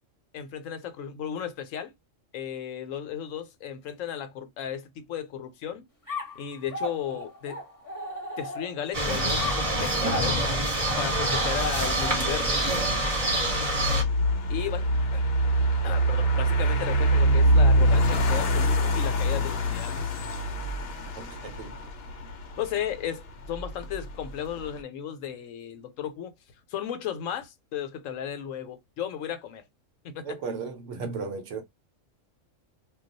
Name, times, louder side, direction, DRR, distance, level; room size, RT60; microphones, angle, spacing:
voice 1, 0.3-1.9 2.3-5.8 6.3-7.6 8.4-10.4 11.0-12.6 14.5-14.9 15.1-15.2 15.8-20.1 22.6-26.3 26.7-29.6 30.0-30.4, left 9 dB, 80° left, 1.0 m, -35 dB
sound 1, 6.1-8.9 9.4-12.3, left 1 dB, 15° left, 0.9 m, -37 dB
sound 2, 8.9-14.0, right 1 dB, 30° right, 0.9 m, -26 dB
sound 3, 10.1-24.8, right 1 dB, 60° left, 0.8 m, -25 dB
voice 2, 21.2-21.8 30.2-31.6, right 5 dB, 70° right, 1.0 m, -35 dB
2.3 x 2.3 x 3.8 m
omnidirectional pair, 1.4 m